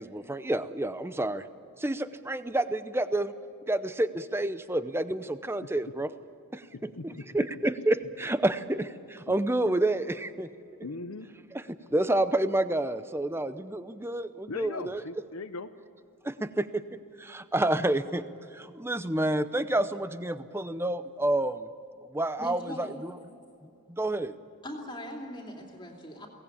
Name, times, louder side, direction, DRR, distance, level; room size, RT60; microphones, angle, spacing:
voice 1, 0.0-1.5 1.8-3.3 3.7-6.1 6.5-10.5 11.5-15.0 16.2-18.2 18.5-21.7 22.1-23.1 23.9-24.3, right 1 dB, 10° right, 12 dB, 0.6 m, -29 dB
voice 2, 6.7-7.2 10.8-11.3 14.5-15.7, left 3 dB, 75° left, 9 dB, 0.9 m, -39 dB
voice 3, 22.4-23.5 24.6-26.3, left 1 dB, 20° left, 0 dB, 2.7 m, -41 dB
23.0 x 18.0 x 8.7 m, 2.7 s
head